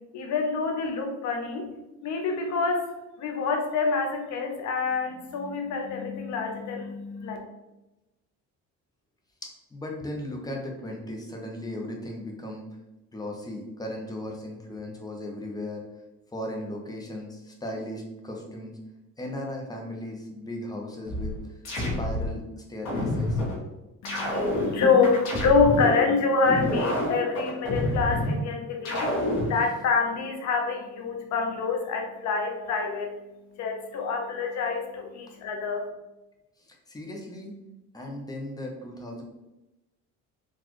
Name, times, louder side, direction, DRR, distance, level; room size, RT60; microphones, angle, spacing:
voice 1, 0.1-1.7 2.0-2.9 3.2-7.4 24.0-29.1 29.5-33.1 33.5-35.9, left 4 dB, 60° left, 2 dB, 0.8 m, -26 dB
voice 2, 9.7-12.6 13.1-15.8 16.3-18.7 19.2-21.6 22.0-23.4 36.6-37.5 37.9-39.2, left 1 dB, 10° left, 1 dB, 0.6 m, -36 dB
sound 1, 21.0-22.4 22.8-23.6 24.0-26.0 26.4-28.4 28.8-29.6, left 1 dB, 80° left, 1.4 m, -28 dB
4.0 x 2.4 x 3.0 m, 1.0 s
cardioid pair, 135°, 32 cm